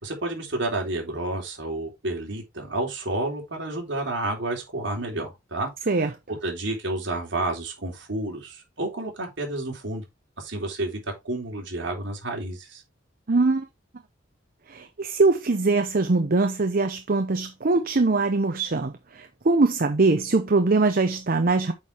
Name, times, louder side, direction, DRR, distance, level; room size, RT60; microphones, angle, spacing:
voice 1, 0.0-5.7 6.4-10.0 10.4-12.8, right 2 dB, 65° right, 3.4 m, -30 dB
voice 2, 13.3-13.7 14.7-21.7, right 3 dB, 50° right, 0.7 m, -22 dB
8.6 x 4.7 x 3.4 m
head